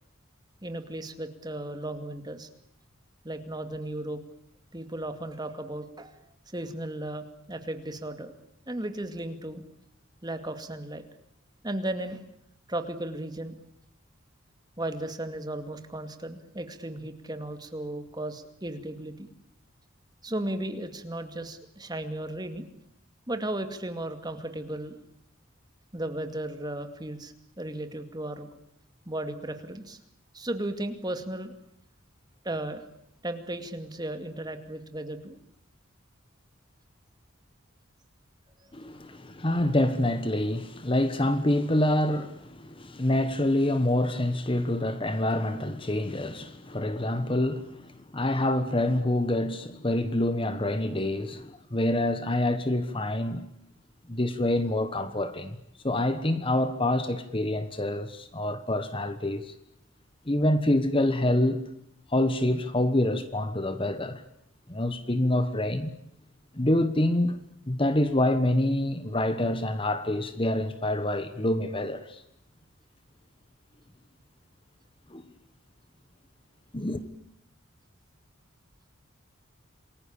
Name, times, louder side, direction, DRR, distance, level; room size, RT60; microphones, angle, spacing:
voice 1, 0.6-2.5 3.2-4.2 4.7-6.2 6.5-8.3 8.7-9.6 10.2-11.0 11.6-12.2 12.7-13.6 14.8-19.3 20.2-22.7 23.3-24.9 25.9-28.5 29.1-30.0 30.3-31.5 32.4-32.8 33.2-35.3 38.6-38.9, right 1 dB, 20° right, 2.3 m, -35 dB
voice 2, 38.7-53.5 54.1-55.6 55.8-59.5 60.2-61.6 62.1-64.2 64.7-65.9 66.5-72.2 75.1-75.2 76.7-77.0, left 1 dB, 25° left, 1.3 m, -26 dB
28.0 x 21.0 x 8.8 m
head